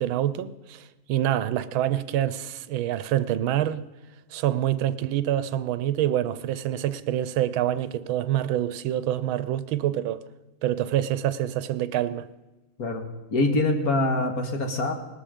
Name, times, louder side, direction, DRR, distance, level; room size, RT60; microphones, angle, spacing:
voice 1, 0.0-3.8 4.3-10.2 10.6-12.3, right 12 dB, 90° right, 1.5 m, -26 dB
voice 2, 13.3-14.9, left 2 dB, 50° left, 2.0 m, -24 dB
19.0 x 13.0 x 5.1 m
omnidirectional pair, 2.1 m